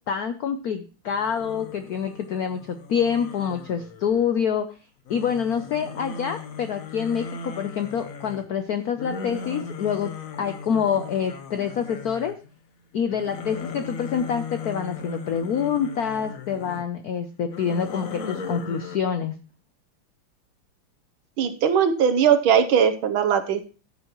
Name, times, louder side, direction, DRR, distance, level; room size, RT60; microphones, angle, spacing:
voice 1, 0.1-4.7 5.1-10.1 10.4-12.4 12.9-19.3, left 7 dB, 75° left, 8 dB, 0.8 m, -26 dB
sound 1, 1.1-4.4 5.1-12.5 12.9-16.8 17.4-19.0, left 5 dB, 50° left, 1.0 m, -38 dB
voice 2, 21.4-23.6, right 8 dB, 70° right, 9 dB, 1.6 m, -20 dB
14.5 x 7.2 x 3.0 m, 0.35 s
omnidirectional pair, 2.4 m